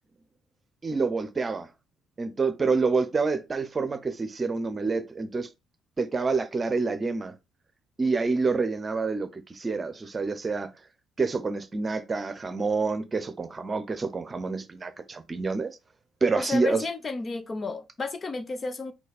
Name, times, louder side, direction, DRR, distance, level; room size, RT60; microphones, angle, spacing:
voice 1, 0.8-1.7 2.2-5.5 6.0-7.3 8.0-10.7 11.2-15.8 16.2-16.8, right 4 dB, 35° right, 0.8 m, -27 dB
voice 2, 16.4-18.9, left 3 dB, 35° left, 0.7 m, -32 dB
4.1 x 2.9 x 4.2 m
hypercardioid pair, 55°, 0 cm